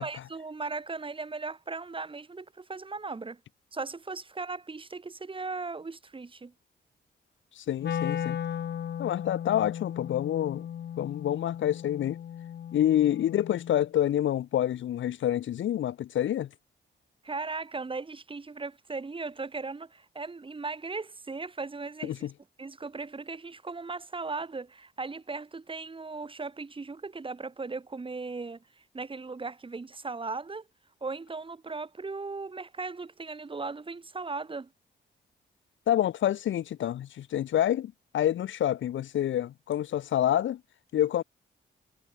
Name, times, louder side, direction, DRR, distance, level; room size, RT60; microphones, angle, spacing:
voice 1, 0.0-3.4 3.7-6.5 17.2-22.1 22.6-30.7 31.0-34.7, right 4 dB, 25° right, 4.4 m, -37 dB
voice 2, 7.6-8.4 9.0-10.7 11.0-12.2 12.7-16.5 22.0-22.3 35.9-40.6 40.9-41.2, left 11 dB, 80° left, 1.1 m, -27 dB
Wind instrument woodwind instrument, 7.8-13.9, left 9 dB, 60° left, 1.0 m, -36 dB
cardioid pair, 120°, 19 cm